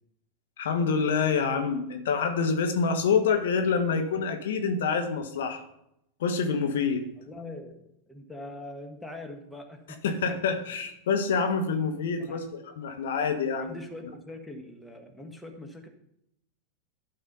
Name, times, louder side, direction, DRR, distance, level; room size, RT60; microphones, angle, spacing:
voice 1, 0.6-5.6 6.2-7.0 10.0-13.8, left 5 dB, 70° left, 6 dB, 1.2 m, -27 dB
voice 2, 7.2-10.4 12.2-12.4 13.6-15.9, left 2 dB, 5° left, 3 dB, 1.5 m, -43 dB
11.5 x 4.2 x 5.4 m, 0.78 s
hypercardioid pair, 95°, 0 cm